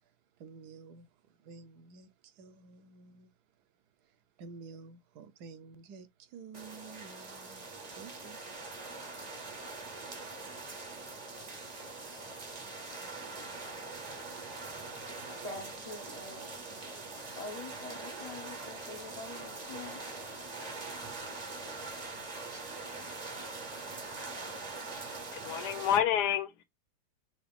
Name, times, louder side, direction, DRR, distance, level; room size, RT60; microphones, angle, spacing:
voice 1, 0.4-1.1 1.4-3.3 4.4-7.7 7.9-8.4, right 4 dB, 75° right, 1.2 m, -50 dB
sound 1, 6.5-26.0, right 3 dB, 40° right, 0.6 m, -43 dB
voice 2, 15.4-16.9 17.3-20.0, left 2 dB, 50° left, 0.4 m, -45 dB
voice 3, 25.3-26.6, left 9 dB, 80° left, 1.2 m, -29 dB
5.9 x 2.4 x 3.4 m
omnidirectional pair, 1.8 m